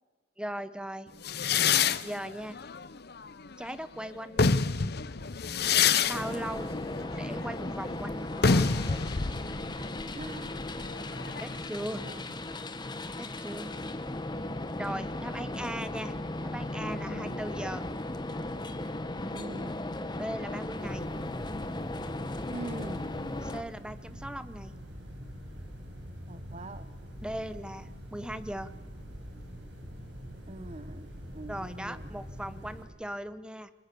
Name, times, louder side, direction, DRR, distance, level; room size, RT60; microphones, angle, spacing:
voice 1, 0.4-1.1 2.0-2.6 3.6-4.6 6.0-6.7 7.1-8.7 11.4-12.1 13.2-13.8 14.8-16.1 16.4-17.9 20.2-21.1 23.4-24.7 27.2-28.7 31.5-33.7, right 1 dB, 5° right, 13 dB, 1.0 m, -38 dB
sound 1, 1.2-3.7 4.2-11.7, left 5 dB, 60° left, 0.9 m, -28 dB
sound 2, 6.1-23.6, left 1 dB, 25° left, 1.4 m, -36 dB
voice 2, 10.1-10.6 11.9-12.4 15.4-15.7 17.1-17.4 19.3-19.7 22.5-23.1 26.3-26.9 30.5-32.1, right 2 dB, 40° right, 10 dB, 1.0 m, -43 dB
sound 3, 20.7-32.8, equal, 70° right, 7.5 m, -44 dB
30.0 x 23.5 x 7.0 m, 1.3 s
head